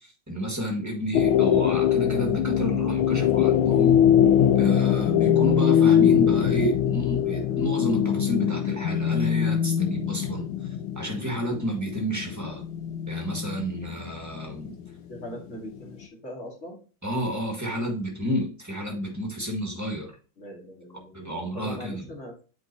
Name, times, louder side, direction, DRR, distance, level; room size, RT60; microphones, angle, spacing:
voice 1, 0.3-4.0 4.6-10.5 10.9-12.6 13.1-14.7 17.0-20.1 21.1-22.0, equal, 10° right, 1 dB, 1.5 m, -30 dB
sound 1, 1.1-14.9 15.2-15.3, left 9 dB, 85° left, 1.4 m, -22 dB
voice 2, 15.1-16.8 20.4-22.4, equal, 40° left, -1 dB, 2.4 m, -41 dB
7.8 x 4.8 x 2.8 m, 0.36 s
omnidirectional pair, 2.1 m